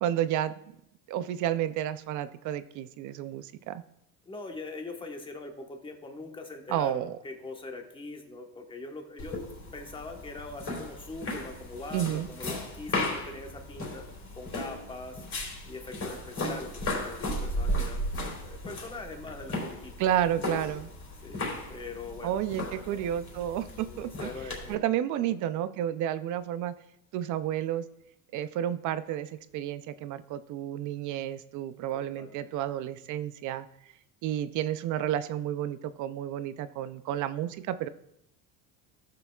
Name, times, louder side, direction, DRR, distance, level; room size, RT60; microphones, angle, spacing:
voice 1, 0.0-0.5 1.1-3.8 6.7-7.2 11.9-12.3 20.0-20.9 22.2-24.3 24.7-26.7 27.1-27.8 28.3-33.7 34.2-37.9, right 11 dB, 45° right, 13 dB, 0.5 m, -31 dB
voice 2, 4.3-9.4 9.7-14.1 14.3-15.3 15.6-18.1 18.4-19.9 21.2-21.4 21.7-23.1 23.7-24.8 25.2-25.6 31.9-32.6, left 3 dB, 10° left, 3 dB, 1.2 m, -42 dB
sound 1, 9.2-24.8, left 1 dB, 35° left, 3.4 m, -36 dB
17.0 x 6.7 x 2.3 m, 0.78 s
cardioid pair, 135°, 41 cm